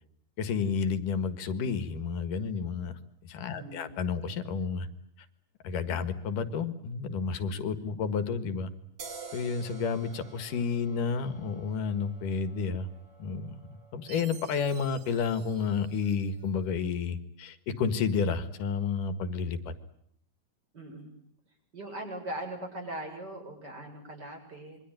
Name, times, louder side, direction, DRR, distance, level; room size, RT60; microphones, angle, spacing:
voice 1, 0.4-2.9 3.2-4.9 5.6-8.7 9.3-12.9 13.2-19.7, left 5 dB, 85° left, 12 dB, 3.3 m, -31 dB
voice 2, 3.5-3.9 20.7-21.2 21.7-24.8, right 1 dB, 30° right, 3 dB, 7.5 m, -40 dB
sound 1, 9.0-16.3, right 4 dB, 45° right, 3.7 m, -50 dB
Chime, 14.1-16.5, right 8 dB, 90° right, 3.7 m, -52 dB
27.0 x 23.5 x 9.0 m, 0.70 s
omnidirectional pair, 3.6 m